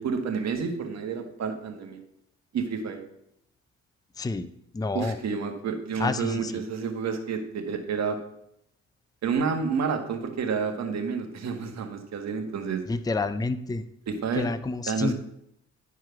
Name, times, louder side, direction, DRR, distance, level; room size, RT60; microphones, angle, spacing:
voice 1, 0.0-2.0 2.5-3.0 4.9-8.2 9.2-12.8 14.1-14.5 14.9-15.2, right 5 dB, 60° right, 5 dB, 1.7 m, -29 dB
voice 2, 4.2-5.2 6.0-6.6 12.9-13.8 14.4-15.2, left 3 dB, 10° left, 11 dB, 0.5 m, -29 dB
11.0 x 4.7 x 5.8 m, 0.74 s
cardioid pair, 90°, 30 cm